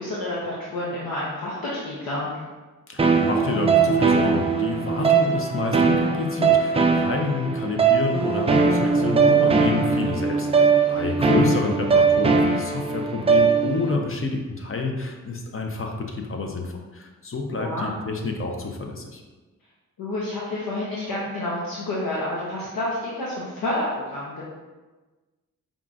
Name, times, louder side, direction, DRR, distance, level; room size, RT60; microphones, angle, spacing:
voice 1, 0.0-2.3 10.9-11.4 17.5-17.9 20.0-24.4, left 1 dB, 75° left, -6 dB, 0.8 m, -29 dB
voice 2, 2.9-19.2, left 3 dB, 35° left, 2 dB, 0.6 m, -28 dB
sound 1, 3.0-14.0, right 5 dB, 20° right, 0.3 m, -20 dB
5.3 x 2.4 x 2.5 m, 1.2 s
cardioid pair, 50°, 35 cm